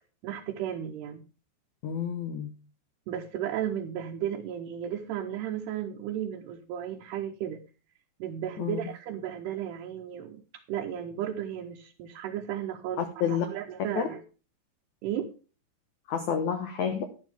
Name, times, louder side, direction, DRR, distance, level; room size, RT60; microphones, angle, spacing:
voice 1, 0.2-1.2 3.1-7.6 8.2-10.4 10.7-14.2 15.0-15.3, right 10 dB, 80° right, 2 dB, 2.9 m, -34 dB
voice 2, 1.8-2.5 8.6-8.8 13.0-13.5 14.0-14.1 16.1-17.0, left 8 dB, 70° left, 7 dB, 1.8 m, -29 dB
12.0 x 11.5 x 3.5 m, 0.34 s
omnidirectional pair, 4.9 m